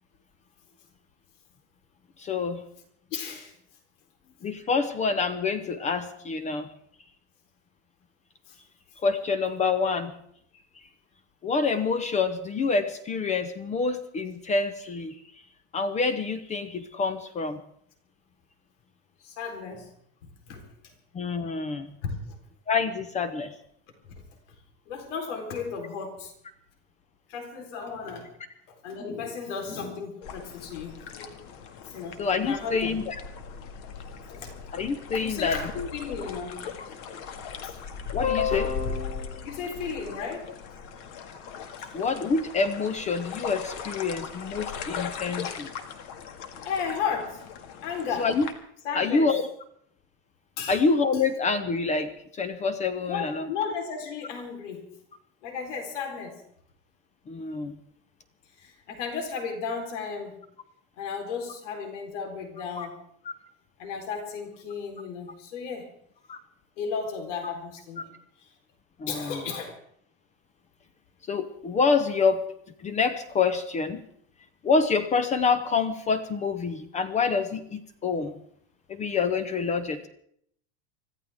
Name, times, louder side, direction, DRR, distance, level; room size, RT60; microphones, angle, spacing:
voice 1, 2.2-2.6 4.4-6.7 9.0-10.1 11.4-15.1 15.7-17.6 21.1-21.9 22.7-23.5 32.2-33.1 34.7-35.9 38.1-39.4 41.9-45.7 48.2-48.5 48.9-49.4 50.7-52.1 52.4-53.5 57.3-57.7 62.8-62.9 66.3-66.4 69.0-69.4 71.3-72.4 72.8-74.0 74.6-78.3 78.9-80.1, left 4 dB, 20° left, 10 dB, 0.7 m, -27 dB
voice 2, 3.1-3.5 8.5-8.6 19.2-19.9 20.2-20.9 22.0-22.3 24.1-24.2 24.9-26.3 27.3-28.3 28.7-31.3 31.8-32.2 32.5-33.0 34.2-34.5 35.1-36.6 37.6-37.8 39.4-40.8 41.8-41.9 46.6-47.4 47.8-48.3 48.8-49.3 50.6-50.8 53.1-54.9 55.4-56.4 58.6-60.4 61.0-63.0 63.8-65.9 66.8-68.1 68.4-68.5 69.1-69.8, left 6 dB, 90° left, 3 dB, 3.9 m, -34 dB
sound 1, 30.2-48.5, left 6 dB, 50° left, 2.0 m, -39 dB
25.0 x 14.5 x 3.5 m, 0.69 s
supercardioid pair, 155°, 35 cm